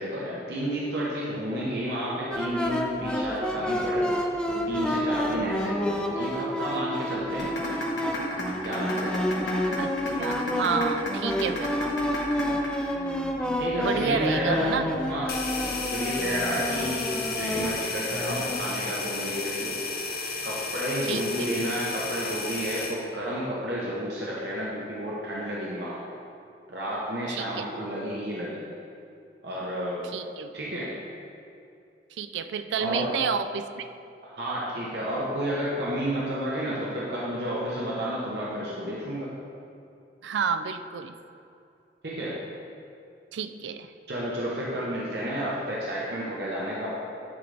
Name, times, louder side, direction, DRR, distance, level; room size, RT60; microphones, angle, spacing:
voice 1, 0.0-7.5 8.6-9.2 13.6-14.7 15.1-15.3 15.9-19.7 20.4-26.0 26.7-28.6 29.4-30.1 30.5-31.0 32.8-33.1 34.2-39.3 42.0-42.4 44.1-46.9, equal, 70° right, -6 dB, 0.9 m, -31 dB
sound 1, 2.3-18.6, equal, 5° left, 0.4 m, -29 dB
sound 2, 7.4-13.4, left 1 dB, 85° left, 1.3 m, -32 dB
voice 2, 9.8-11.9 13.8-14.8 21.0-21.5 27.3-27.7 30.1-30.5 32.2-33.9 40.2-41.1 43.3-43.9, right 6 dB, 85° right, 10 dB, 0.3 m, -30 dB
sound 3, 15.3-23.0, left 4 dB, 55° left, 0.7 m, -33 dB
9.9 x 3.8 x 3.4 m, 2.6 s
head